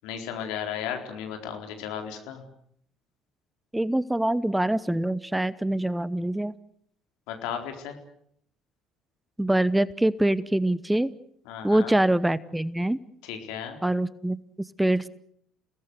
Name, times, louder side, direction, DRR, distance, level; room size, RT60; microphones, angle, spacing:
voice 1, 0.0-2.4 7.3-8.0 11.5-11.9 13.2-13.8, left 8 dB, 70° left, 5 dB, 4.2 m, -35 dB
voice 2, 3.7-6.5 9.4-11.1 11.6-13.0 13.8-15.1, right 1 dB, 5° right, 19 dB, 0.9 m, -24 dB
29.5 x 18.5 x 8.1 m, 0.70 s
hypercardioid pair, 60°, 0 cm